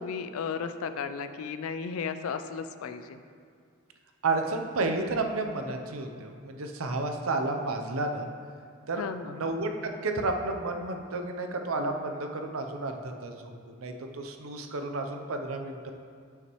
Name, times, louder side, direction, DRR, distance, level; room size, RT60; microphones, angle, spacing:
voice 1, 0.0-3.2 9.0-9.4, left 6 dB, 85° left, 9 dB, 0.4 m, -34 dB
voice 2, 4.2-8.3 8.9-15.9, right 2 dB, 85° right, 5 dB, 0.7 m, -31 dB
9.4 x 5.6 x 3.1 m, 2.2 s
head